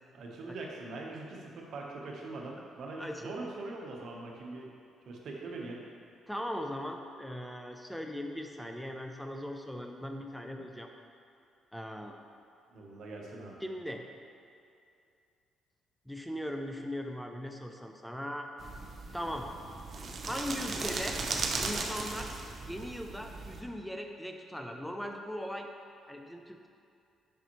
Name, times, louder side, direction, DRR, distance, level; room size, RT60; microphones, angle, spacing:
voice 1, 0.1-4.7 5.1-5.8 12.7-13.6, right 2 dB, 65° right, -1 dB, 1.0 m, -42 dB
voice 2, 3.0-3.3 6.3-10.9 11.7-12.2 13.6-14.0 16.1-18.5 19.1-19.5 20.2-21.2 21.6-22.3 22.6-25.7 26.1-26.7, equal, ahead, 3 dB, 0.4 m, -39 dB
sound 1, 18.6-23.6, right 3 dB, 45° right, 0.6 m, -37 dB
6.9 x 5.3 x 3.0 m, 2.5 s
cardioid pair, 90°, 0 cm